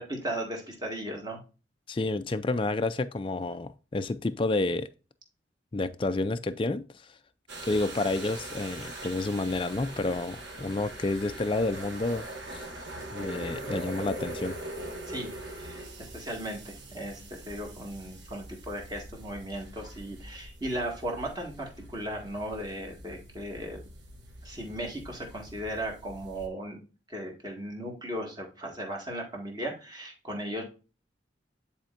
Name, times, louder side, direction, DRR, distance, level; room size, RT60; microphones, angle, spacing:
voice 1, 0.0-1.4 15.1-15.3 15.6-15.9 16.1-23.8 24.4-26.8 27.1-30.6, right 1 dB, 20° right, 1.8 m, -36 dB
voice 2, 1.9-4.9 5.7-7.1 7.7-12.7 13.1-14.6, left 2 dB, 25° left, 0.3 m, -30 dB
sound 1, 7.5-26.5, right 1 dB, 70° right, 1.6 m, -42 dB
10.0 x 4.3 x 2.5 m
head